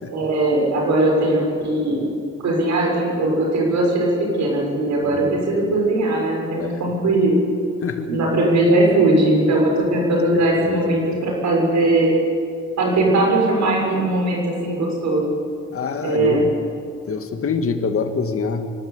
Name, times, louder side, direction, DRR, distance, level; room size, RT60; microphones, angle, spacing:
voice 1, 0.1-2.1 2.4-4.1 4.4-7.4 8.1-12.1 12.8-15.3 16.0-16.4, right 2 dB, 65° right, -1 dB, 6.4 m, -19 dB
voice 2, 5.0-5.4 6.6-6.9 7.8-8.1 10.3-10.9 15.7-16.5 17.1-18.7, left 5 dB, 50° left, 7 dB, 2.0 m, -26 dB
25.5 x 12.5 x 8.3 m, 2.5 s
cardioid pair, 90°, 30 cm